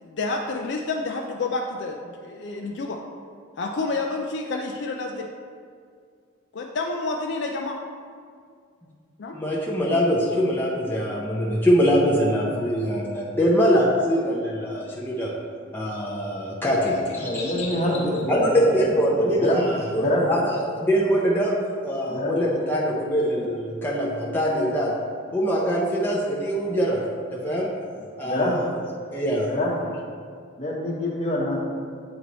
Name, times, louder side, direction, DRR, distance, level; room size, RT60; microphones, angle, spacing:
voice 1, 0.0-3.0 3.6-5.3 6.5-7.8 9.2-9.4, left 3 dB, 60° left, 2 dB, 0.4 m, -29 dB
voice 2, 9.3-15.3 15.7-17.5 18.3-21.5 21.8-24.9 25.3-27.0 27.3-27.7 28.2-28.6 29.1-29.5, equal, 10° left, -5 dB, 0.5 m, -23 dB
voice 3, 16.9-18.9 19.2-20.3 22.1-22.4 28.2-28.6 29.5-29.8 30.6-31.6, left 1 dB, 35° left, -3 dB, 1.0 m, -26 dB
8.7 x 3.1 x 4.0 m, 2.2 s
head